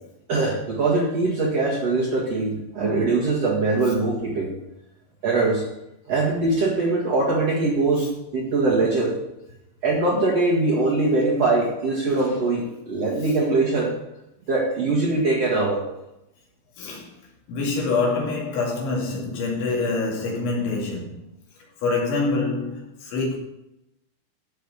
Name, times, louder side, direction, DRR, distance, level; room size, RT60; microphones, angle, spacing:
voice 1, 0.3-4.5 5.2-5.6 6.1-9.2 9.8-13.9 14.5-15.8, right 3 dB, 65° right, -5 dB, 1.5 m, -22 dB
voice 2, 16.8-17.1 17.5-21.2 21.8-23.4, left 3 dB, 65° left, -3 dB, 4.6 m, -25 dB
13.0 x 5.4 x 7.1 m, 0.89 s
omnidirectional pair, 6.0 m